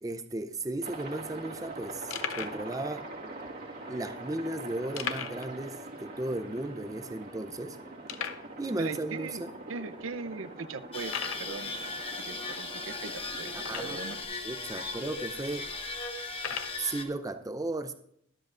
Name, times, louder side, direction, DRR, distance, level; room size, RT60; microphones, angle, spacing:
voice 1, 0.0-3.1 3.8-7.8 8.6-9.5 13.5-14.0 14.4-15.7 16.5-17.9, right 2 dB, 15° right, 8 dB, 0.5 m, -35 dB
sound 1, 0.6-0.7 0.9-1.1 1.6-1.7 2.1-2.6 3.4-3.5 5.0-5.5 5.8-5.9 6.4-6.5 7.1-7.2 8.1-8.5 9.3-9.4 10.0-10.1 11.0-11.5 13.6-14.2 14.9-15.0 16.3-16.8, left 8 dB, 75° left, 0.6 m, -37 dB
Aircraft, 0.8-14.2, right 2 dB, 45° right, 1.7 m, -44 dB
voice 2, 8.8-9.4 9.7-14.2, right 4 dB, 70° right, 12 dB, 0.6 m, -40 dB
sound 2, 10.9-17.0, left 3 dB, 25° left, 1.2 m, -37 dB
22.5 x 7.7 x 2.5 m, 0.69 s
head